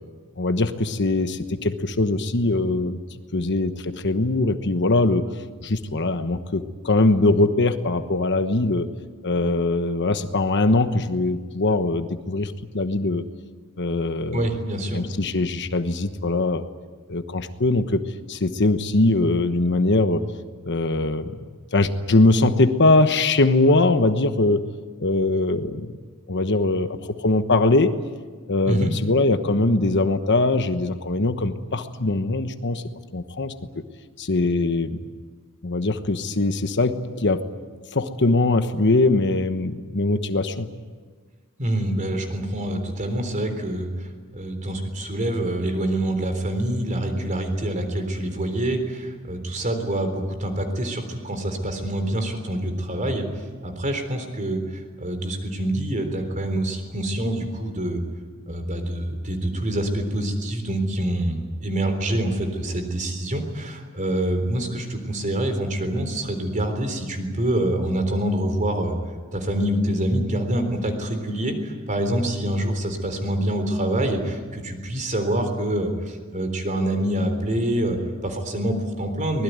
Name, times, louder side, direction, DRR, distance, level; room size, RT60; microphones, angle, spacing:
voice 1, 0.4-3.0 3.3-8.9 9.2-13.2 13.8-14.5 14.9-16.6 17.1-18.0 18.3-20.2 20.6-21.4 21.7-24.6 25.0-25.9 26.3-27.9 28.5-32.8 33.1-33.5 34.2-35.0 35.6-37.5 37.9-40.7, left 2 dB, 50° left, 9 dB, 1.2 m, -21 dB
voice 2, 14.3-15.0 28.7-28.9 41.6-44.1 44.3-53.3 53.6-58.0 58.5-69.0 69.3-79.4, right 1 dB, 35° right, 6 dB, 3.8 m, -26 dB
24.5 x 20.5 x 9.5 m, 1.5 s
head